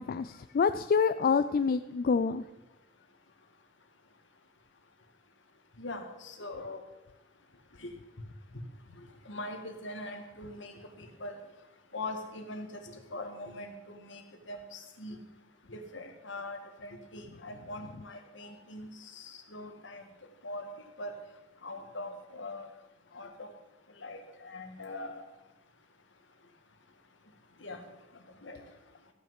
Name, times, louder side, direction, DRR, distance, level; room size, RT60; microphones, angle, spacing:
voice 1, 0.0-2.4, left 5 dB, 50° left, 11 dB, 0.3 m, -27 dB
voice 2, 5.8-6.8 7.8-7.9 9.3-11.4 11.9-15.2 15.7-20.0 20.4-20.7 21.0-21.1 21.6-22.7 23.1-23.5 24.0-25.2 27.6-27.8 28.4-28.6, left 2 dB, 70° left, 5 dB, 1.8 m, -42 dB
14.5 x 6.4 x 7.3 m, 1.0 s
head